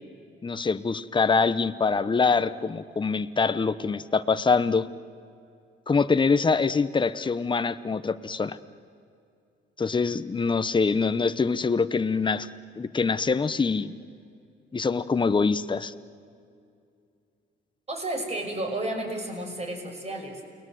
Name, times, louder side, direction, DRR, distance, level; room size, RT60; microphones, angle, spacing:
voice 1, 0.4-4.9 5.9-8.6 9.8-12.5 12.8-13.9 14.7-15.9, left 4 dB, 25° left, 12 dB, 1.0 m, -24 dB
voice 2, 17.9-20.4, right 1 dB, 35° right, 2 dB, 6.0 m, -32 dB
29.5 x 21.0 x 7.9 m, 2.4 s
cardioid pair, 90°, 20 cm